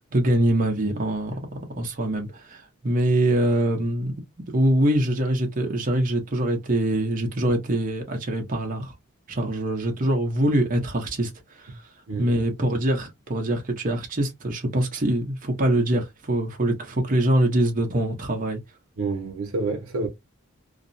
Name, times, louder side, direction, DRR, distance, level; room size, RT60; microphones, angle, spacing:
voice 1, 0.0-4.1 4.5-8.9 9.3-11.8 12.2-18.6, right 1 dB, 40° right, 0.8 m, -24 dB
voice 2, 19.0-20.1, right 3 dB, 85° right, 0.7 m, -28 dB
2.4 x 2.0 x 2.6 m
head